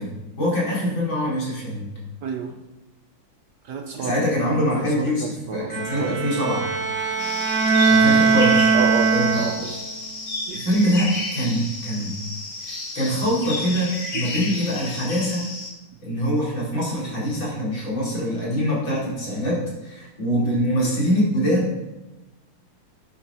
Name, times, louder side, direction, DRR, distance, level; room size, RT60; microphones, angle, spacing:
voice 1, 0.0-1.9 4.0-5.2 5.5-6.7 7.9-8.7 9.1-9.4 10.5-12.1 12.7-15.5 16.0-21.7, equal, 65° left, -6 dB, 5.1 m, -24 dB
voice 2, 2.2-2.6 3.6-4.2 4.7-6.2 8.7-9.8 10.5-10.7 14.1-14.3 16.1-16.2 20.4-20.9, right 6 dB, 65° right, 6 dB, 1.1 m, -31 dB
Bowed string instrument, 5.7-9.9, right 4 dB, 45° right, 1.7 m, -20 dB
sound 1, 7.2-15.7, left 2 dB, 35° left, 2.0 m, -32 dB
12.0 x 10.0 x 4.3 m, 1.0 s
omnidirectional pair, 2.3 m